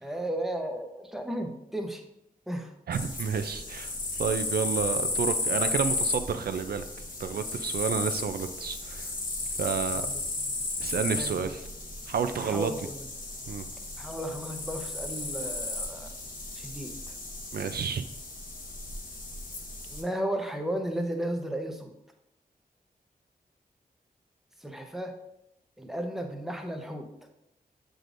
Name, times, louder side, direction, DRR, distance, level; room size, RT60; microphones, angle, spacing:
voice 1, 0.0-2.0 2.5-2.7 9.9-10.5 11.1-11.5 12.4-13.1 14.0-16.1 16.6-16.9 19.9-21.9 24.6-25.1 25.8-27.1, right 1 dB, ahead, 3 dB, 0.8 m, -34 dB
sound 1, 2.9-20.0, left 2 dB, 60° left, 1.1 m, -34 dB
voice 2, 2.9-3.9 4.2-6.8 7.2-9.1 9.6-10.0 10.8-11.7 12.1-12.7 13.5-13.6 17.5-18.0, right 6 dB, 80° right, 10 dB, 0.5 m, -30 dB
7.6 x 4.9 x 2.6 m, 0.83 s
wide cardioid pair, 100°, 16 cm